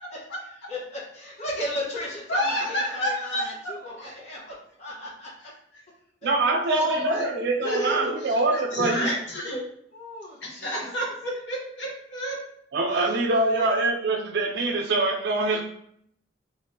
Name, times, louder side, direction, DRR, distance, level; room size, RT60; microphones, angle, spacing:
voice 1, 0.7-4.5 4.8-5.3 9.9-11.1, left 1 dB, 40° left, -5 dB, 1.2 m, -35 dB
voice 2, 2.3-3.7 4.0-4.1 6.7-8.1 8.5-9.6 10.4-12.4 13.4-13.6, equal, 85° left, -2 dB, 1.2 m, -29 dB
voice 3, 6.2-9.1 12.7-15.6, right 2 dB, 65° right, 3 dB, 0.4 m, -24 dB
3.6 x 3.3 x 2.8 m, 0.70 s
head